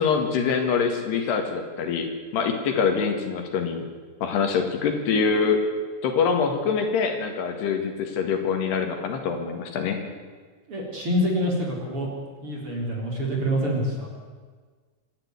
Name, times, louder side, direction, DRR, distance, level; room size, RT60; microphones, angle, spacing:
voice 1, 0.0-3.9 4.2-5.6 6.0-10.0, left 5 dB, 70° left, 5 dB, 3.9 m, -24 dB
voice 2, 10.7-12.1 12.4-14.1, equal, 30° right, -1 dB, 4.5 m, -26 dB
26.0 x 12.0 x 9.7 m, 1.5 s
omnidirectional pair, 5.1 m